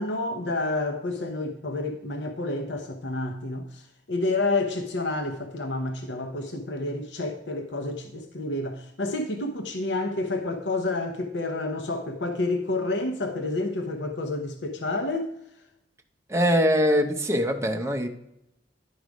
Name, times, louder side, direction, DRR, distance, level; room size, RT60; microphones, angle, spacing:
voice 1, 0.0-15.3, left 2 dB, 75° left, 0.8 m, -29 dB
voice 2, 16.3-18.1, equal, 15° right, 0.7 m, -22 dB
10.5 x 4.7 x 5.2 m
head